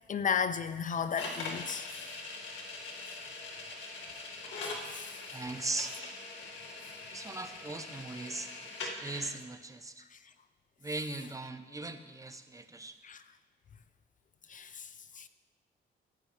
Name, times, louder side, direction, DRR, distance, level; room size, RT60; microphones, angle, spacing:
voice 1, 0.1-2.2 3.2-3.3 4.7-5.2 10.1-10.3 13.0-13.4 14.5-15.3, left 6 dB, 40° left, 0.5 m, -35 dB
sound 1, 1.2-9.3, left 3 dB, 70° left, 2.0 m, -42 dB
voice 2, 5.3-5.9 7.1-10.0 10.8-13.0, right 2 dB, 15° right, 0.7 m, -39 dB
15.5 x 9.5 x 3.3 m
cardioid pair, 90°, 20 cm